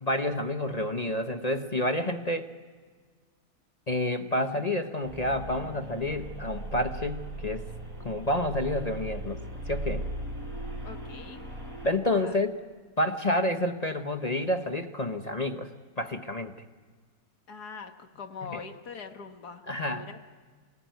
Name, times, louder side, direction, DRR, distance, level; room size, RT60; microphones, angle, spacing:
voice 1, 0.0-2.5 3.9-7.6 8.0-9.4 9.7-10.0 11.8-12.6 13.0-15.7 16.0-16.5 18.5-18.6 19.7-20.0, left 1 dB, 30° left, 6 dB, 1.0 m, -29 dB
sound 1, 5.0-11.9, right 1 dB, 65° right, 5.7 m, -38 dB
voice 2, 10.8-11.4 12.1-12.4 17.5-19.6 19.9-20.2, left 5 dB, 80° left, 6 dB, 2.0 m, -43 dB
29.0 x 19.0 x 9.3 m, 1.5 s
omnidirectional pair, 1.7 m